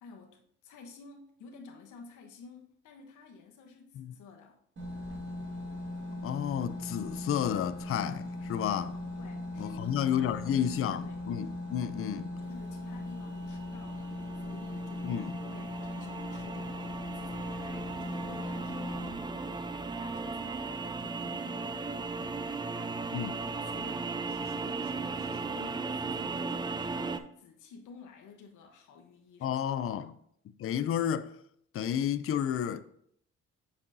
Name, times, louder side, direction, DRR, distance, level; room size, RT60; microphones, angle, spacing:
voice 1, 0.0-4.6 9.2-11.3 12.4-23.1 23.4-29.6 30.0-30.1, left 5 dB, 75° left, 1.0 m, -53 dB
sound 1, 4.8-19.1, left 1 dB, 40° right, 1.7 m, -39 dB
voice 2, 6.2-9.0 9.6-12.3 15.0-15.4 23.1-23.4 29.4-30.2 30.6-31.3 31.7-32.8, left 9 dB, 45° left, 0.5 m, -31 dB
sound 2, 12.7-27.2, right 4 dB, 15° right, 0.4 m, -37 dB
7.0 x 5.5 x 2.6 m
cardioid pair, 90°, 30 cm